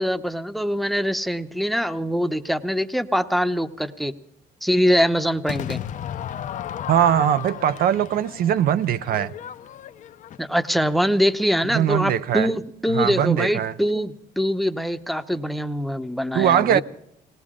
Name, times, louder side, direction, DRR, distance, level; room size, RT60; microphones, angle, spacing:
voice 1, 0.0-4.1 4.6-5.8 10.4-16.8, equal, ahead, 0.8 m, -23 dB
Crowd / Fireworks, 5.5-10.7, left 10 dB, 50° left, 0.6 m, -34 dB
voice 2, 6.9-9.3 11.7-12.5 12.9-13.7 16.3-16.8, right 10 dB, 60° right, 0.5 m, -21 dB
19.5 x 18.0 x 3.7 m
cardioid pair, 110°, 17 cm